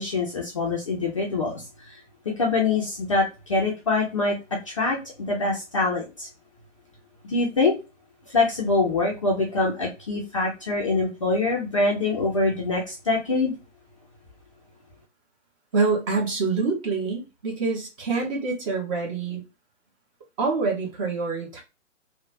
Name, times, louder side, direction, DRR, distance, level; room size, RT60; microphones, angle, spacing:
voice 1, 0.0-1.5 2.4-4.4 4.7-6.3 7.2-7.7 8.3-13.5, left 3 dB, 25° left, 0.4 m, -24 dB
voice 2, 15.7-19.4 20.4-21.6, right 4 dB, 25° right, 0.8 m, -26 dB
3.0 x 2.1 x 2.5 m
figure-of-eight pair, 135°, 39 cm